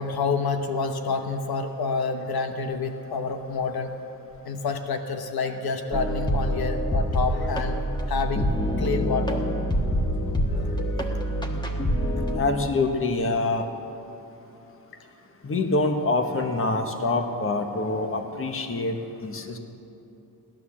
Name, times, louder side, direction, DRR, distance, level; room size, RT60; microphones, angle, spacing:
voice 1, 0.0-3.9 4.5-7.8 8.1-8.5 8.8-9.4 10.5-11.0, left 4 dB, 75° left, 6 dB, 1.1 m, -28 dB
sound 1, 5.9-12.4, equal, 10° left, 1.4 m, -26 dB
voice 2, 12.4-13.7 15.4-19.6, left 3 dB, 35° left, 5 dB, 1.3 m, -25 dB
17.0 x 11.5 x 7.3 m, 2.9 s
wide cardioid pair, 135°, 37 cm